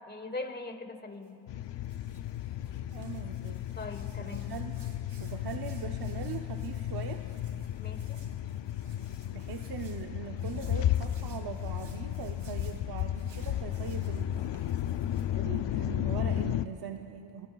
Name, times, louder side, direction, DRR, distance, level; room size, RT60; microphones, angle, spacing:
voice 1, 0.1-1.4 3.8-4.5 7.8-8.2, left 2 dB, 20° left, 7 dB, 1.2 m, -41 dB
Hands, 1.1-15.7, right 5 dB, 70° right, 2.6 m, -61 dB
sound 1, 1.5-16.7, left 11 dB, 60° left, 0.5 m, -34 dB
voice 2, 2.9-3.6 4.2-4.8 5.2-7.3 9.3-14.6 15.3-17.5, right 7 dB, 50° right, 5 dB, 0.7 m, -41 dB
27.0 x 20.0 x 2.3 m, 2.6 s
cardioid pair, 105°, 49 cm